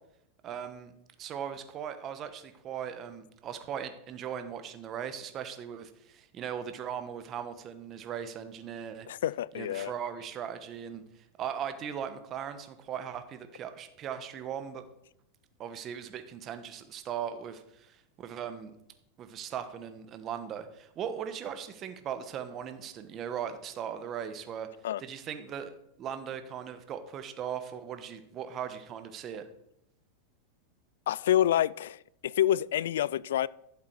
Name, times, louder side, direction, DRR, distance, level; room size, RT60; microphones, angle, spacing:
voice 1, 0.4-0.9 1.2-9.1 9.5-14.8 15.6-18.7 19.2-24.7 25.0-29.5, right 8 dB, 35° right, 9 dB, 1.2 m, -39 dB
voice 2, 9.1-9.9 24.8-25.0 31.1-33.5, left 11 dB, 80° left, 23 dB, 0.3 m, -27 dB
11.5 x 7.3 x 4.7 m, 0.80 s
supercardioid pair, 130°, 0 cm